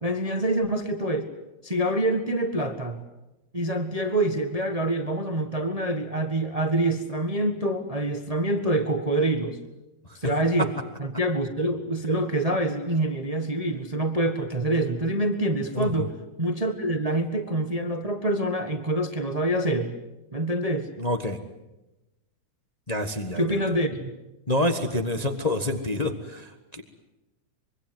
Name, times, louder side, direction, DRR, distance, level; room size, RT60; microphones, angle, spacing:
voice 1, 0.0-1.3 1.6-3.0 3.5-9.6 10.1-10.7 11.0-19.9 20.3-20.9 23.4-24.1, right 1 dB, 55° right, 7 dB, 0.4 m, -26 dB
voice 2, 15.7-16.1 21.0-21.4 22.9-23.6 24.5-26.8, left 1 dB, 55° left, 6 dB, 0.4 m, -27 dB
25.0 x 24.0 x 7.9 m, 0.98 s
omnidirectional pair, 3.5 m